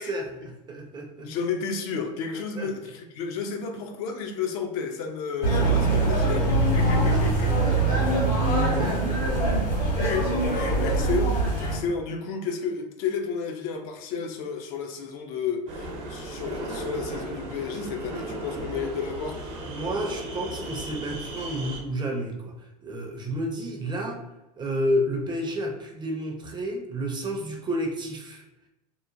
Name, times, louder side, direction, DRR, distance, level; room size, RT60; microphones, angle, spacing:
voice 1, 0.0-1.3 2.3-2.7 7.0-8.3 8.8-9.3 19.7-22.5 22.8-24.2 24.6-28.4, equal, 20° right, 1 dB, 0.5 m, -31 dB
voice 2, 1.2-7.5 10.0-19.4, left 5 dB, 60° left, 4 dB, 0.5 m, -32 dB
sound 1, 5.4-11.8, right 2 dB, 80° left, 1.4 m, -23 dB
sound 2, 15.7-21.8, right 1 dB, 55° right, 0.7 m, -36 dB
2.9 x 2.1 x 2.5 m, 0.98 s
hypercardioid pair, 100°, 21 cm